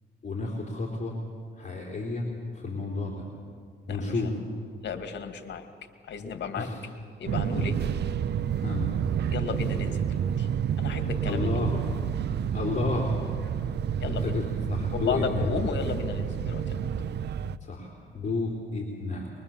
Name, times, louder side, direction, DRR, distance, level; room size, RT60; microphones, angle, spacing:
voice 1, 0.2-1.2 1.6-2.3 2.5-3.2 3.9-4.4 6.6-6.8 7.6-7.8 8.6-8.9 11.2-11.8 12.5-13.1 14.1-15.6 17.6-19.3, left 3 dB, 35° left, -2 dB, 3.8 m, -31 dB
voice 2, 3.9-4.2 4.8-5.7 6.0-6.7 7.2-7.7 9.3-10.5 10.8-11.7 14.0-14.3 14.9-16.7, left 6 dB, 60° left, 7 dB, 2.3 m, -33 dB
Fixed-wing aircraft airplane, 7.3-17.6, right 8 dB, 60° right, 0.7 m, -29 dB
24.0 x 22.0 x 7.3 m, 2.2 s
cardioid pair, 90°, 20 cm